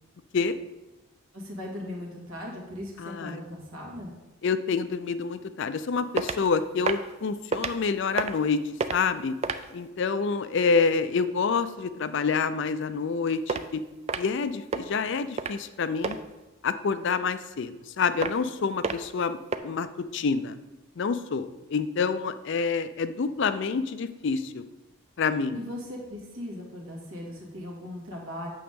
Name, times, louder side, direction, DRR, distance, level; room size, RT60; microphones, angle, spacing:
voice 1, 1.3-4.1 25.5-28.5, left 1 dB, 70° right, -2 dB, 2.1 m, -38 dB
voice 2, 3.0-3.5 4.4-8.6 8.9-9.3 9.7-13.8 14.2-16.2 16.6-19.9 20.1-20.6 21.0-24.6 25.2-25.6, left 5 dB, 55° left, 12 dB, 0.4 m, -27 dB
sound 1, 6.2-6.5 6.8-7.1 7.5-7.7 8.1-8.5 8.8-9.0 9.4-9.7 13.5-13.6 14.1-14.4 14.7-14.9 15.4-15.7 16.0-16.2 18.2-18.5 18.8-19.1 19.5-19.6, right 4 dB, 30° right, 0.3 m, -29 dB
8.6 x 6.3 x 3.6 m, 1.1 s
head